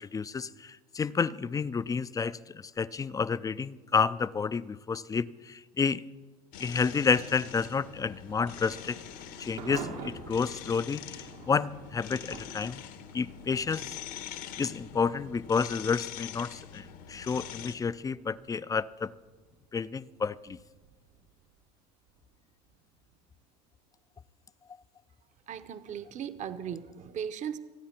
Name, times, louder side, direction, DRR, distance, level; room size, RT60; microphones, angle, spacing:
voice 1, 0.0-6.0 6.6-9.0 9.4-12.8 13.1-14.0 14.6-19.1 19.7-20.6, left 5 dB, 15° left, 17 dB, 0.4 m, -30 dB
sound 1, 6.5-17.7, left 10 dB, 75° left, 1.4 m, -44 dB
Thunder / Rain, 8.1-24.8, right 6 dB, 90° right, 2.1 m, -50 dB
voice 2, 25.5-27.6, right 8 dB, 35° right, 10 dB, 0.8 m, -37 dB
25.5 x 9.2 x 4.4 m, 1.3 s
supercardioid pair, 95°, 21 cm